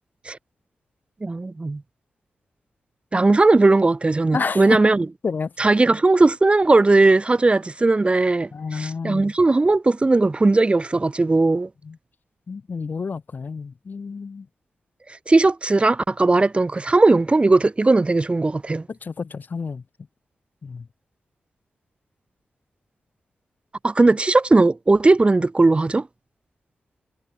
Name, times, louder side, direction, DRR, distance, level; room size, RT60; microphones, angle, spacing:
voice 1, 1.2-1.8 3.1-5.1 5.6-11.7 15.3-18.9 23.8-26.1, right 3 dB, 30° right, 1.5 m, -18 dB
voice 2, 4.3-4.8 5.2-5.7 8.5-9.3 11.8-12.0 12.5-14.5 18.9-19.8 20.6-20.9, left 5 dB, 55° left, 4.1 m, -30 dB
cardioid pair, 60°, 4 cm